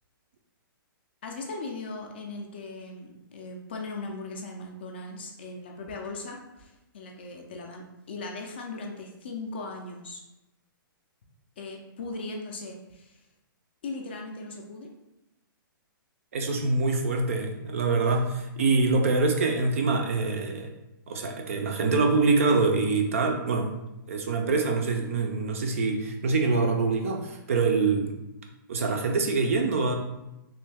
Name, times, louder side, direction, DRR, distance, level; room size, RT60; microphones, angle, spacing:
voice 1, 1.2-10.2 11.6-13.2 13.8-14.9, left 3 dB, 30° left, 1 dB, 0.4 m, -38 dB
voice 2, 16.3-20.7 21.1-23.7 24.1-28.1 28.7-29.9, right 3 dB, 40° right, 3 dB, 0.4 m, -25 dB
3.1 x 2.6 x 3.3 m, 0.96 s
hypercardioid pair, 175°, 12 cm